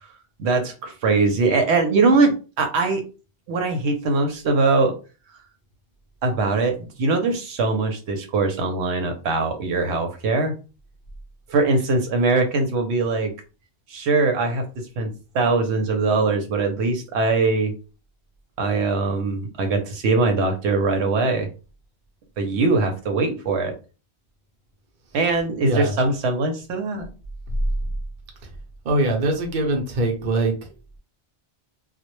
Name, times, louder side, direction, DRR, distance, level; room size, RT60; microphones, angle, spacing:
voice 1, 0.4-3.0 3.5-4.9 6.2-10.5 11.5-13.3 13.9-17.7 18.6-21.5 22.4-23.7 25.1-27.1, right 3 dB, 80° right, 5 dB, 0.9 m, -22 dB
voice 2, 25.6-25.9 28.8-30.5, right 2 dB, 55° right, 2 dB, 0.7 m, -22 dB
2.2 x 2.1 x 2.9 m, 0.33 s
omnidirectional pair, 1.1 m